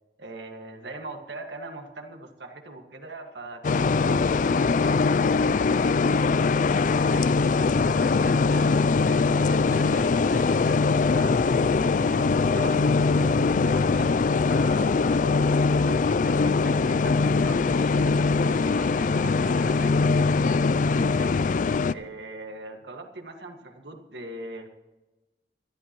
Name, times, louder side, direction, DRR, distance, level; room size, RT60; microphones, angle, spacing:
voice 1, 0.2-5.0 5.4-5.9 6.6-8.7 9.0-12.2 12.5-14.2 14.5-20.5 20.9-21.3 21.9-24.7, right 2 dB, 80° right, 4 dB, 1.9 m, -41 dB
sound 1, 3.6-21.9, left 4 dB, 45° left, 0.4 m, -22 dB
25.5 x 11.5 x 3.1 m, 1.1 s
head